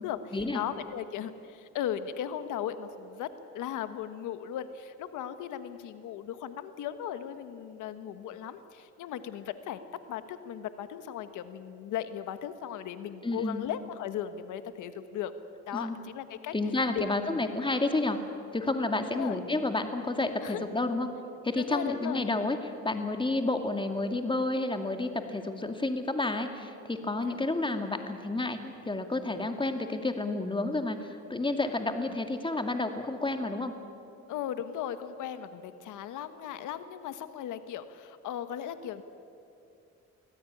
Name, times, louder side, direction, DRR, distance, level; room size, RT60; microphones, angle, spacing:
voice 1, 0.0-3.3 3.5-9.8 10.1-15.3 15.7-16.5 16.9-17.7 19.1-19.4 20.4-20.7 21.6-22.2 27.2-27.4 32.1-32.2 34.3-39.0, left 10 dB, 90° left, 11 dB, 1.4 m, -37 dB
voice 2, 13.2-13.7 15.7-16.0 16.5-18.2 18.5-21.1 21.4-22.6 22.8-33.7, left 2 dB, 15° left, 6 dB, 2.4 m, -30 dB
23.5 x 16.5 x 10.0 m, 2.6 s
cardioid pair, 90°, 30 cm